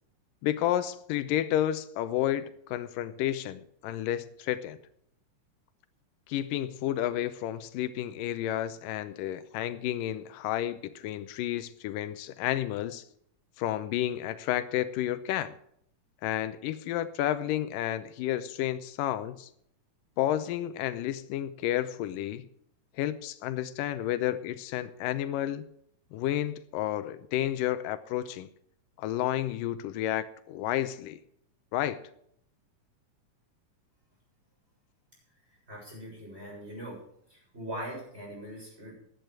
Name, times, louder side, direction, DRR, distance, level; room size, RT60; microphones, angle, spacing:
voice 1, 0.4-4.8 6.3-13.0 13.6-15.5 16.2-19.5 20.2-22.5 23.0-25.7 26.1-28.5 29.0-31.2 31.7-32.0, left 12 dB, 90° left, 13 dB, 2.4 m, -31 dB
voice 2, 35.7-37.0 37.3-38.9, equal, 15° right, -3 dB, 7.2 m, -41 dB
15.5 x 10.5 x 4.7 m, 0.69 s
omnidirectional pair, 3.8 m